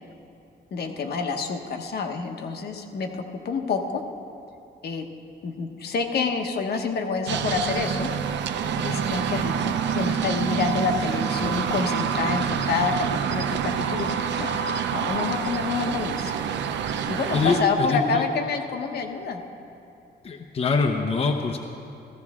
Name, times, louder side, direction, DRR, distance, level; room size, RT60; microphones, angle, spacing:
voice 1, 0.7-3.1 3.4-4.0 4.8-5.1 5.4-8.1 8.8-14.6 14.9-16.3 17.1-19.4, left 4 dB, 65° left, 4 dB, 1.1 m, -27 dB
sound 1, 7.3-17.6, right 7 dB, 80° right, 0.6 m, -27 dB
voice 2, 17.3-18.2 20.2-21.6, left 4 dB, 35° left, 2 dB, 0.7 m, -24 dB
15.0 x 14.5 x 3.6 m, 2.6 s
wide cardioid pair, 150°, 18 cm